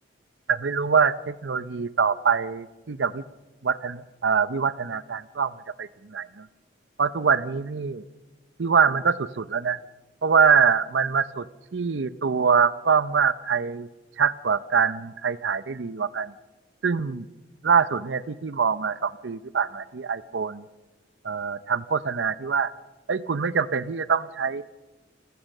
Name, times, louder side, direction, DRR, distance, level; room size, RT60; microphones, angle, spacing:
voice 1, 0.5-3.2 3.6-5.5 5.8-6.5 7.0-8.0 8.6-9.8 10.2-11.5 11.7-13.9 14.2-16.3 16.8-17.3 17.6-20.6 21.2-22.7 23.1-24.6, right 6 dB, 80° right, 16 dB, 0.6 m, -24 dB
29.0 x 15.5 x 6.6 m, 1.2 s
head